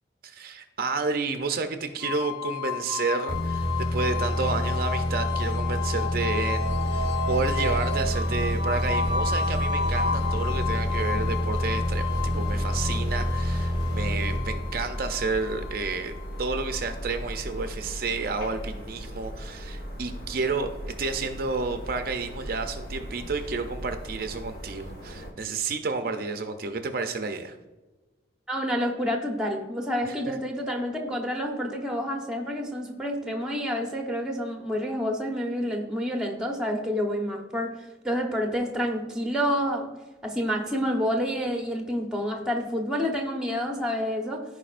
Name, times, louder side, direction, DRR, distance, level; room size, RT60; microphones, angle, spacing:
voice 1, 0.2-20.7 21.0-27.6 30.1-30.4, right 4 dB, 55° right, 7 dB, 0.5 m, -31 dB
sound 1, 2.0-16.9, left 5 dB, 70° left, 0.6 m, -32 dB
sound 2, 3.3-15.0, equal, 30° left, 1.6 m, -28 dB
sound 3, 6.6-25.3, equal, 55° left, 1.4 m, -36 dB
voice 2, 28.5-37.7 38.0-39.9 40.2-44.4, equal, 5° right, 1 dB, 1.0 m, -28 dB
14.5 x 4.8 x 2.5 m, 1.1 s
head